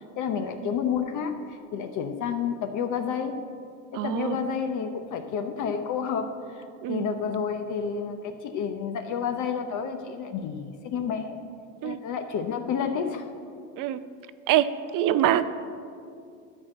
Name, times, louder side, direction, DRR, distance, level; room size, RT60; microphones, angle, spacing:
voice 1, 0.0-3.4 3.9-11.4 11.8-13.3, left 7 dB, 50° left, 6 dB, 0.8 m, -30 dB
voice 2, 4.0-4.3 6.8-7.1 11.8-12.0 13.8-14.0 14.5-15.4, right 12 dB, 55° right, 13 dB, 0.6 m, -24 dB
12.0 x 4.5 x 7.6 m, 2.4 s
supercardioid pair, 95°, 39 cm